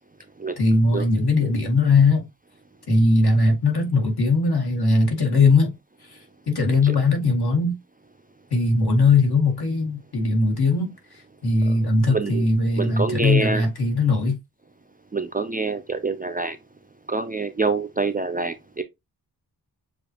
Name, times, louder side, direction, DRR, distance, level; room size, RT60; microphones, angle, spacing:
voice 1, 0.6-2.3 2.9-5.7 6.0-6.2 6.5-7.7 8.5-14.4, left 3 dB, 65° left, 1.9 m, -20 dB
voice 2, 12.1-12.5 12.8-13.7 15.1-16.6 17.1-18.8, right 3 dB, 20° right, 0.4 m, -26 dB
6.9 x 2.5 x 2.8 m
wide cardioid pair, 130°, 41 cm